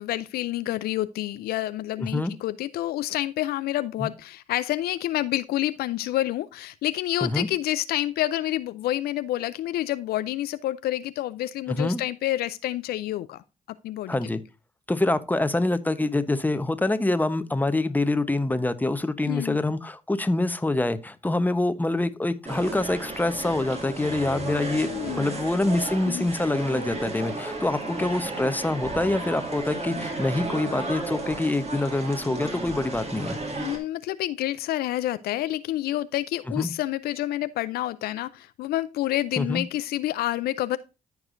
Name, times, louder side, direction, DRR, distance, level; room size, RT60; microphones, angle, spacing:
voice 1, 0.0-13.4 13.8-14.2 19.3-19.6 24.8-25.4 26.0-26.3 33.6-40.8, left 14 dB, 75° left, 0.4 m, -28 dB
voice 2, 2.0-2.3 4.0-4.1 7.2-7.5 11.7-12.0 14.1-14.4 14.9-24.9 25.2-33.4 36.6-36.7 39.4-39.6, left 2 dB, 10° left, 0.9 m, -25 dB
sound 1, 22.4-33.8, right 2 dB, 40° right, 2.2 m, -33 dB
14.0 x 4.8 x 2.6 m
supercardioid pair, 50°, 16 cm